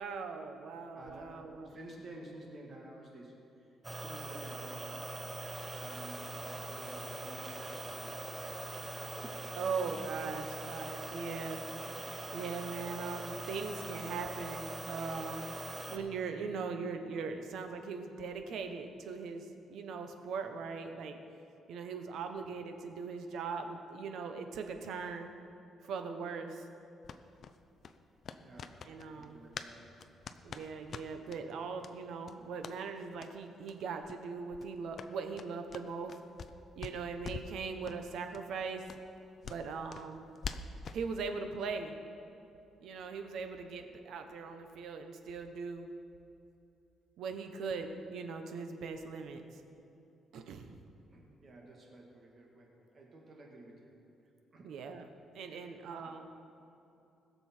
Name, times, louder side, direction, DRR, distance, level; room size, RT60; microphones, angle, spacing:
voice 1, 0.0-1.7 9.6-11.6 12.3-15.6 15.9-21.2 21.7-25.3 25.8-26.7 28.8-29.4 30.4-36.1 36.8-38.8 39.4-40.3 40.9-42.0 42.8-45.9 47.2-49.4 50.3-50.7 54.6-55.1 55.3-56.3, right 5 dB, 70° right, 6 dB, 1.1 m, -40 dB
voice 2, 0.9-4.9 5.7-6.3 6.7-8.2 28.4-28.8 29.1-29.9 51.1-53.9 54.5-54.8 55.5-56.1, right 1 dB, 35° right, -1 dB, 2.0 m, -52 dB
sound 1, 3.8-16.0, right 2 dB, 20° right, 0.9 m, -42 dB
sound 2, 5.5-15.9, left 1 dB, 10° left, 0.8 m, -55 dB
sound 3, 27.0-29.7 30.0-31.4 31.8-31.9 32.2-32.8 33.2-33.3 33.6-33.8 34.0-34.2 34.5-36.5 36.8-37.6 37.8-38.0 38.3-38.4 38.9-41.0, left 6 dB, 45° left, 0.5 m, -45 dB
20.5 x 7.0 x 4.5 m, 2.8 s
cardioid pair, 140°, 0 cm